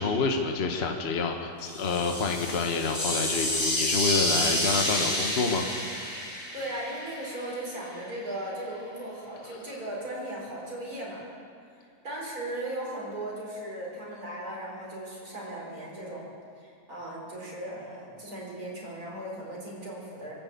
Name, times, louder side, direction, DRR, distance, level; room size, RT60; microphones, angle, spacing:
voice 1, 0.0-5.6, left 4 dB, 40° left, 3 dB, 1.2 m, -28 dB
sound 1, 1.6-7.5, left 1 dB, 85° left, 5.6 m, -29 dB
voice 2, 6.5-11.2 12.0-16.3 16.6-20.3, right 1 dB, 60° right, -4 dB, 5.0 m, -37 dB
22.5 x 7.6 x 8.4 m, 2.4 s
omnidirectional pair, 1.8 m